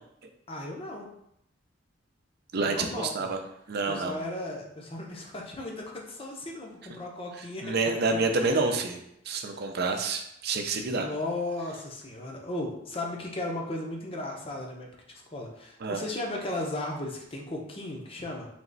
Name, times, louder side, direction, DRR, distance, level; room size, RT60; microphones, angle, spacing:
voice 1, 0.5-1.1 2.6-3.3 3.9-7.7 8.1-8.8 10.9-18.5, left 2 dB, 30° left, 0 dB, 0.7 m, -36 dB
voice 2, 2.5-3.4 3.7-4.2 7.6-9.0 9.3-11.1 15.8-16.0, right 3 dB, 55° right, 4 dB, 0.5 m, -28 dB
3.4 x 3.1 x 3.9 m, 0.77 s
head